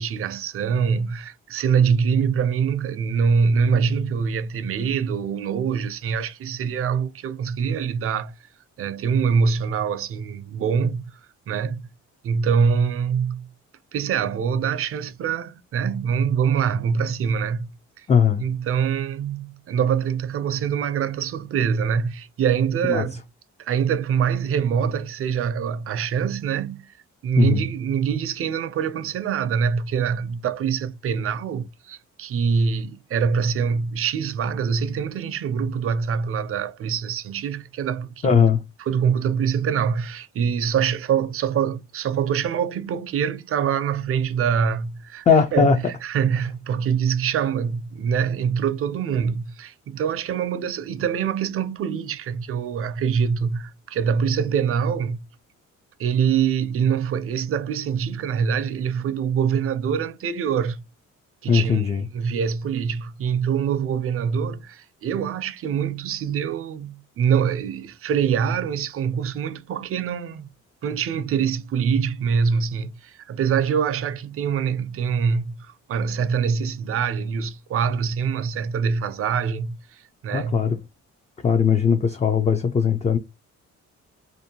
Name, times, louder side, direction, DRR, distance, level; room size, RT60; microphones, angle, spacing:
voice 1, 0.0-8.3 8.8-11.1 11.5-11.9 12.2-13.5 13.9-17.7 18.0-18.1 18.4-23.2 23.6-26.9 27.2-38.4 38.9-45.3 45.5-55.2 56.0-60.8 61.4-61.8 62.1-70.5 70.8-80.7, right 7 dB, 50° right, 0.4 m, -24 dB
voice 2, 18.1-18.4 22.9-23.1 27.4-27.6 38.2-38.6 45.3-45.8 61.5-62.1 80.3-80.8 81.4-83.2, left 6 dB, 25° left, 0.4 m, -19 dB
2.6 x 2.1 x 2.7 m
cardioid pair, 90°, 30 cm